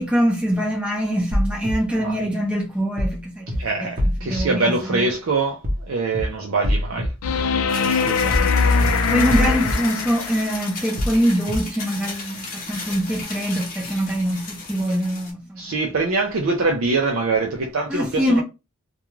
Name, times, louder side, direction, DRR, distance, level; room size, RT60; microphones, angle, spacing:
voice 1, 0.0-3.5 3.8-3.9 4.2-5.1 8.2-8.5 9.1-15.6 17.9-18.4, equal, 5° right, 0.5 m, -23 dB
sound 1, 1.3-1.7 3.0-3.2 3.5-3.6 4.0-4.4 5.6-5.8 6.1-6.2 6.6-7.1 8.3-8.5 8.8-8.9 9.3-9.7 11.0-11.2 11.5-11.6, equal, 40° right, 0.8 m, -23 dB
voice 2, 3.6-5.6 5.9-7.1 7.8-8.7 15.6-18.4, right 3 dB, 70° right, 0.5 m, -24 dB
sound 2, 7.2-10.6 13.2-13.3, left 5 dB, 80° left, 0.4 m, -21 dB
sound 3, 7.7-15.3, left 3 dB, 35° left, 0.8 m, -35 dB
2.3 x 2.2 x 3.0 m
head